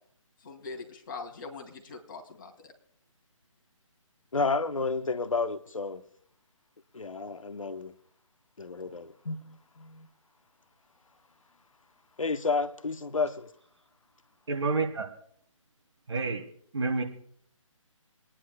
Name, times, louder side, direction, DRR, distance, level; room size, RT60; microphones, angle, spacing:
voice 1, 0.4-2.7 8.9-9.0, left 4 dB, 40° left, 2.5 m, -42 dB
voice 2, 4.3-6.0 6.9-7.9 8.6-10.1 12.2-13.5, left 4 dB, 75° left, 1.0 m, -31 dB
voice 3, 14.5-15.1 16.1-17.0, right 3 dB, 55° right, 2.6 m, -29 dB
27.0 x 10.0 x 2.2 m
figure-of-eight pair, 145°, 17 cm